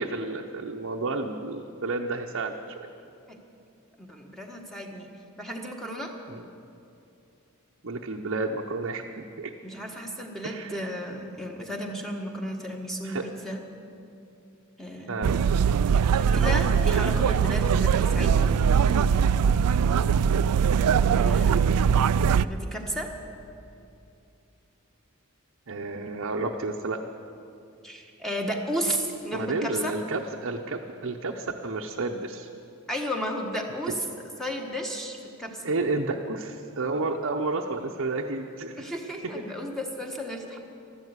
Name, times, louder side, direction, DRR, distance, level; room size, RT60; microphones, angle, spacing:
voice 1, 0.0-2.9 6.3-6.4 7.8-9.5 10.4-10.8 13.0-13.3 15.1-15.5 20.3-20.6 25.7-27.0 29.3-32.5 33.9-34.0 35.6-38.8, right 3 dB, 60° right, 0 dB, 0.8 m, -31 dB
voice 2, 4.0-5.1 5.4-6.2 9.6-13.6 14.8-15.3 16.2-18.5 21.2-21.7 22.4-23.1 27.8-29.9 32.9-34.0 34.4-35.6 38.8-40.6, equal, ahead, 1 dB, 1.3 m, -33 dB
sound 1, 15.2-22.5, right 7 dB, 90° right, 0.4 m, -21 dB
13.5 x 12.0 x 8.1 m, 2.6 s
head